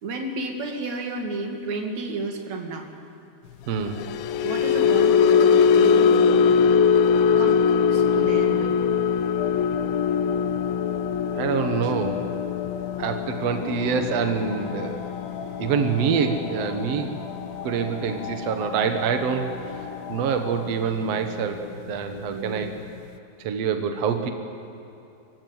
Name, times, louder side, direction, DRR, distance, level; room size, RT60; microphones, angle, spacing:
voice 1, 0.0-2.9 4.4-6.6 7.3-8.9 11.8-11.9 13.5-13.7 22.3-22.8, right 3 dB, 50° right, 3 dB, 2.9 m, -32 dB
voice 2, 3.7-4.0 11.3-12.2 13.0-15.0 15.6-17.1 17.6-19.5 20.1-22.7 23.4-24.3, right 6 dB, 85° right, 6 dB, 1.4 m, -25 dB
sound 1, 3.8-20.2 20.6-20.9 21.2-21.4, left 7 dB, 90° left, 2.1 m, -22 dB
sound 2, 9.4-20.7, left 7 dB, 70° left, 3.4 m, -38 dB
25.0 x 16.0 x 9.6 m, 2.8 s
omnidirectional pair, 5.0 m